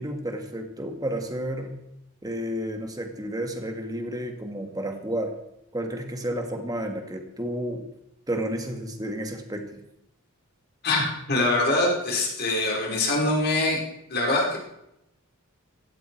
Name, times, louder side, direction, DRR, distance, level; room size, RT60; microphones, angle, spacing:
voice 1, 0.0-1.8 2.2-5.3 5.7-7.8 8.3-9.6, right 1 dB, 20° right, 4 dB, 2.1 m, -31 dB
voice 2, 10.8-13.8 14.1-14.6, left 2 dB, 50° left, -2 dB, 4.5 m, -24 dB
16.5 x 15.5 x 4.7 m, 0.83 s
head